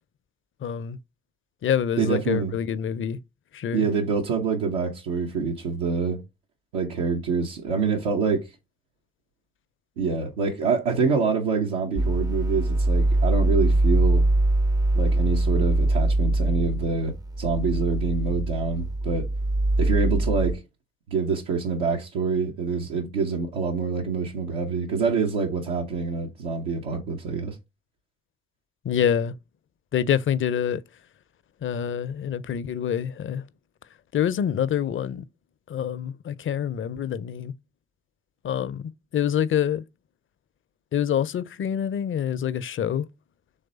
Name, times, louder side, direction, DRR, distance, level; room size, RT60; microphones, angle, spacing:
voice 1, 0.6-1.0 1.6-3.2 3.5-3.9 28.8-29.3 29.9-30.8 31.6-33.4 34.1-35.3 35.7-37.5 38.4-39.8 40.9-43.1, left 9 dB, 40° left, 0.5 m, -26 dB
voice 2, 2.0-2.5 3.7-6.2 6.7-8.5 10.0-14.3 14.9-19.3 19.8-20.6 21.1-27.6, right 5 dB, 80° right, 0.8 m, -26 dB
sound 1, 12.0-20.5, right 2 dB, 15° right, 0.4 m, -23 dB
4.0 x 3.3 x 3.9 m
hypercardioid pair, 45°, 30 cm